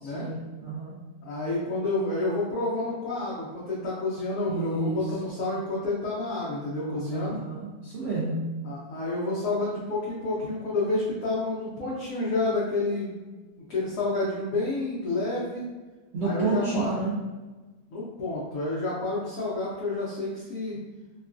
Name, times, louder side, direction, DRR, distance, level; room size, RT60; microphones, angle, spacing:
voice 1, 0.0-1.0 4.5-5.1 7.1-8.4 16.1-17.1, right 3 dB, 85° right, -6 dB, 0.6 m, -30 dB
voice 2, 1.2-7.4 8.6-13.2 13.7-15.6 16.2-16.9 17.9-20.8, left 2 dB, 65° left, -8 dB, 0.9 m, -29 dB
3.0 x 2.2 x 2.4 m, 1.3 s
omnidirectional pair, 1.8 m